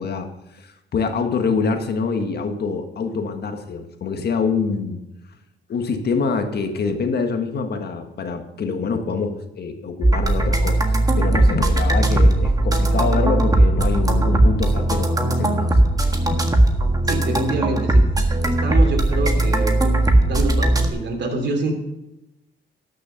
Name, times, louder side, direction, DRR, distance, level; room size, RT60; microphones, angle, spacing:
voice 1, 0.0-5.0 5.7-15.7 16.0-16.6, left 5 dB, 55° left, 6 dB, 1.6 m, -25 dB
sound 1, 10.0-20.9, right 1 dB, 20° right, 1.6 m, -18 dB
voice 2, 17.0-18.0 18.5-19.9 20.2-21.7, right 2 dB, 60° right, 3 dB, 3.0 m, -26 dB
12.5 x 6.7 x 6.5 m, 0.92 s
cardioid pair, 90°, 20 cm